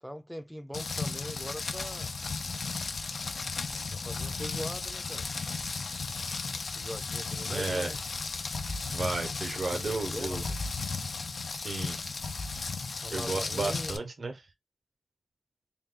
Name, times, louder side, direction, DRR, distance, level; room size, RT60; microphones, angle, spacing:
voice 1, 0.0-2.1 3.9-5.3 6.7-8.0 9.7-10.6 13.0-14.0, equal, ahead, 0.4 m, -41 dB
Rain, 0.7-14.0, left 4 dB, 85° left, 0.5 m, -35 dB
voice 2, 7.5-7.9 8.9-10.4 11.5-12.0 13.1-14.4, right 3 dB, 70° right, 0.7 m, -33 dB
3.5 x 2.3 x 3.7 m
wide cardioid pair, 95°, 0 cm